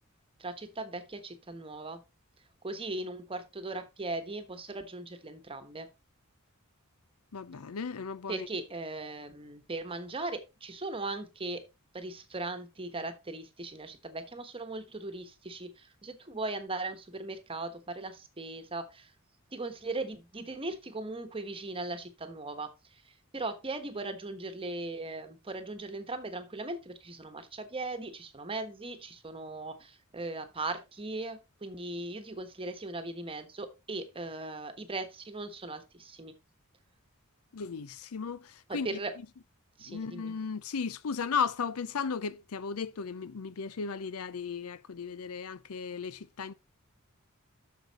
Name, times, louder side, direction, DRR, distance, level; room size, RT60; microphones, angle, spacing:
voice 1, 0.4-2.0 2.6-5.9 8.3-11.6 11.9-19.1 19.5-22.7 23.0-36.3 38.7-39.1 39.8-40.3, right 2 dB, 25° right, 1.2 m, -38 dB
voice 2, 7.3-8.5 37.5-39.0 39.9-46.5, left 6 dB, 90° left, 0.6 m, -35 dB
8.0 x 6.6 x 4.1 m
head